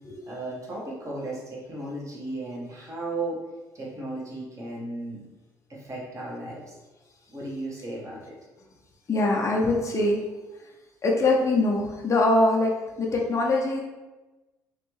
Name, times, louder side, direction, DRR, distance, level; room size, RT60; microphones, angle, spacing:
voice 1, 0.3-3.4 3.7-5.3 5.7-6.7 7.3-8.4, right 2 dB, 35° right, -4 dB, 1.3 m, -35 dB
voice 2, 9.1-10.2 10.6-10.7 11.0-12.7 13.0-13.8, left 2 dB, 30° left, -2 dB, 0.7 m, -23 dB
3.1 x 2.5 x 3.2 m, 1.1 s
hypercardioid pair, 55°, 9 cm